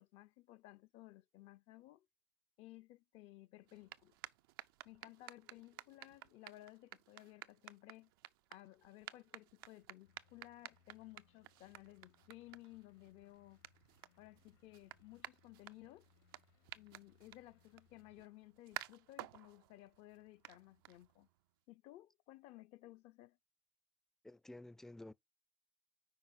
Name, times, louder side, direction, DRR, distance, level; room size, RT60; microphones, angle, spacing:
voice 1, 0.0-2.1 2.6-4.2 4.8-8.1 8.5-13.6 14.2-16.1 16.7-21.3 21.7-23.4, left 17 dB, 60° left, 0.5 m, -58 dB
sound 1, 3.6-21.4, right 16 dB, 90° right, 0.5 m, -55 dB
sound 2, 10.0-18.2, left 7 dB, 85° left, 1.9 m, -73 dB
voice 2, 24.2-25.1, left 1 dB, 5° left, 0.3 m, -52 dB
5.5 x 4.7 x 5.8 m
supercardioid pair, 105°, 12 cm